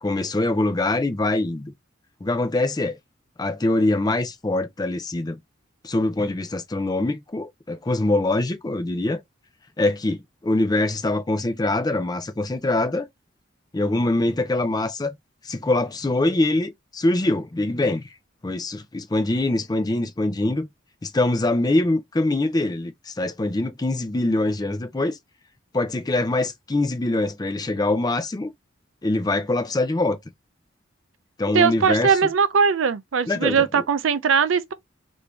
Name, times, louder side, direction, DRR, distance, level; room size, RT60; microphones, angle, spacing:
voice 1, 0.0-1.7 2.2-3.0 3.4-5.4 5.8-9.2 9.8-13.1 13.7-15.2 15.4-18.1 18.4-20.7 21.0-25.2 25.7-28.5 29.0-30.2 31.4-32.2 33.3-33.8, left 2 dB, 20° left, 0.4 m, -23 dB
voice 2, 31.5-34.7, right 6 dB, 85° right, 0.5 m, -20 dB
3.4 x 2.6 x 2.9 m
head